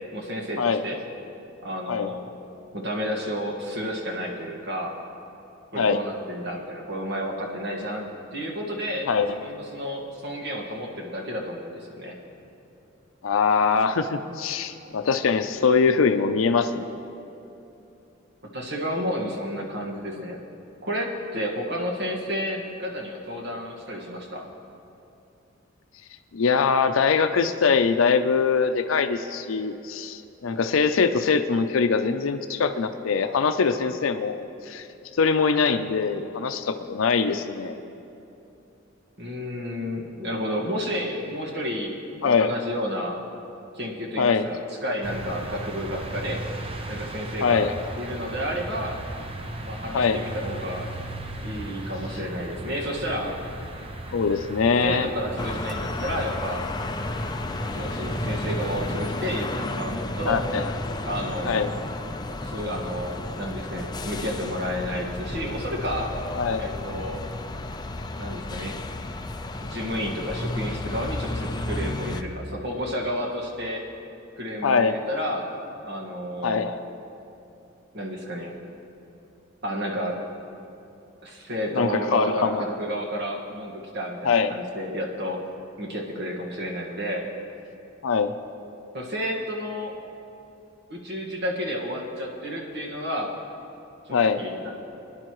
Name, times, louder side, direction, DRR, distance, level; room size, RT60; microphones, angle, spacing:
voice 1, 0.1-1.0 1.6-2.3 2.7-4.9 5.7-9.1 9.4-12.1 18.5-20.4 20.8-24.5 39.2-43.2 43.7-46.4 46.9-47.7 48.0-49.0 49.6-50.9 51.4-53.4 54.8-56.6 57.7-60.4 61.0-61.8 62.4-66.1 66.6-67.2 68.2-68.8 69.6-73.8 74.4-75.5 75.8-76.7 77.9-78.5 79.6-80.2 81.2-85.4 85.8-87.3 88.9-89.9 90.9-93.4 94.1-94.7, equal, 60° right, -1 dB, 1.7 m, -31 dB
voice 2, 13.2-16.9 26.3-34.9 35.2-37.7 42.2-42.6 44.2-44.5 47.4-47.7 49.9-50.2 54.1-55.1 60.3-60.6 61.4-61.7 66.4-66.7 74.6-74.9 76.4-76.8 81.7-82.7 84.2-84.5 88.0-88.3 94.1-94.4, left 5 dB, 85° left, 8 dB, 0.5 m, -22 dB
sound 1, 45.0-59.5, right 1 dB, 30° right, 0.8 m, -36 dB
sound 2, 55.4-72.2, left 2 dB, 20° left, 0.5 m, -32 dB
22.5 x 10.5 x 3.1 m, 2.8 s
head